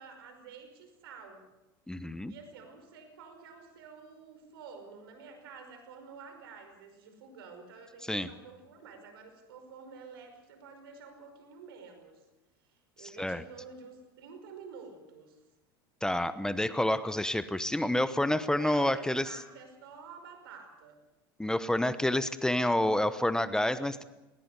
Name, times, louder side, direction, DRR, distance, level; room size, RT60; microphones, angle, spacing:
voice 1, 0.0-1.5 2.3-12.2 12.7-15.4 18.6-21.0, right 5 dB, 80° right, 7 dB, 5.3 m, -50 dB
voice 2, 1.9-2.3 8.1-8.3 13.0-13.4 16.0-19.3 21.4-24.0, left 1 dB, 5° left, 13 dB, 1.0 m, -29 dB
20.0 x 19.5 x 8.3 m, 1.0 s
hypercardioid pair, 95°, 12 cm